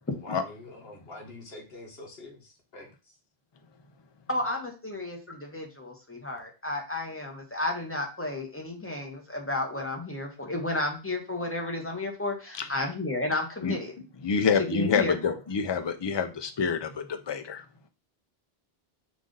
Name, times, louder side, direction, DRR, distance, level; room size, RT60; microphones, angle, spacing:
voice 1, 0.2-3.1, left 2 dB, 70° left, 1 dB, 1.5 m, -45 dB
voice 2, 4.3-13.9 14.6-15.3, left 2 dB, 15° left, 2 dB, 0.9 m, -32 dB
voice 3, 14.2-17.6, left 5 dB, 40° left, 8 dB, 0.4 m, -27 dB
5.2 x 2.6 x 3.8 m, 0.31 s
omnidirectional pair, 1.0 m